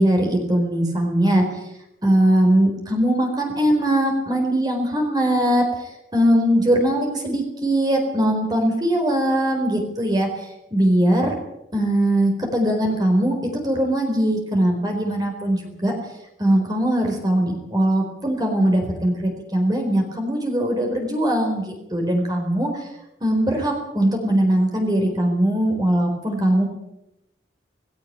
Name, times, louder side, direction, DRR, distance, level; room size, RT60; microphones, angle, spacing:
voice 1, 0.0-1.4 2.0-5.6 6.1-10.3 10.7-11.4 11.7-13.3 13.6-15.9 16.4-22.9 23.2-26.7, right 1 dB, 20° right, 2 dB, 4.3 m, -20 dB
19.5 x 16.5 x 9.5 m, 0.86 s
head